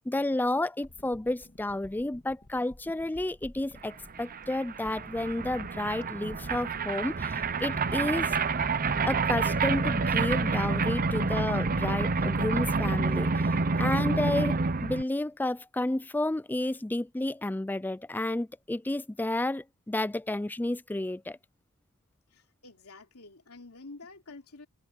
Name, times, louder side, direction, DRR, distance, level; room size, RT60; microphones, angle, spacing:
voice 1, 0.1-8.4 9.1-21.4, left 1 dB, 10° left, 0.4 m, -31 dB
sound 1, 0.8-13.3 13.6-13.7, left 1 dB, 35° left, 1.7 m, -53 dB
sound 2, 3.9-4.0 4.1-15.0, right 4 dB, 40° right, 0.7 m, -28 dB
voice 2, 22.3-24.7, left 3 dB, 80° left, 3.1 m, -49 dB
head